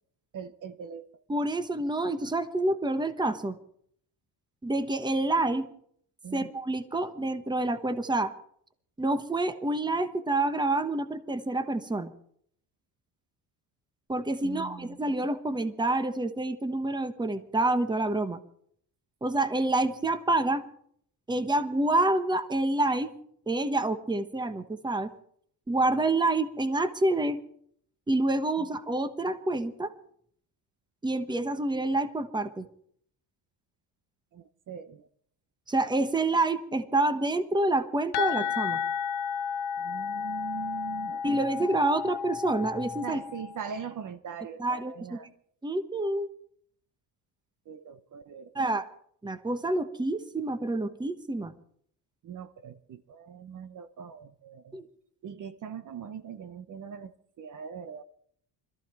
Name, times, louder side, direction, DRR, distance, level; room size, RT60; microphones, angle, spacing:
voice 1, 0.3-1.1 6.2-6.5 14.4-15.0 28.6-28.7 34.3-35.1 39.8-41.2 43.0-45.3 47.7-48.6 52.2-54.8 55.2-57.1 57.4-58.0, right 7 dB, 45° right, 1.0 m, -41 dB
voice 2, 1.3-3.6 4.6-5.7 6.3-8.3 9.0-12.1 14.1-18.4 19.2-20.6 21.3-23.1 23.5-25.1 25.7-27.4 28.1-29.9 31.0-32.7 35.7-38.8 41.2-43.2 44.6-45.2 45.6-46.3 48.5-48.9 49.2-51.5 54.7-54.9, right 2 dB, 10° right, 1.1 m, -27 dB
sound 1, 38.1-43.7, left 7 dB, 70° left, 1.4 m, -33 dB
21.5 x 14.0 x 4.5 m
cardioid pair, 120°, 42 cm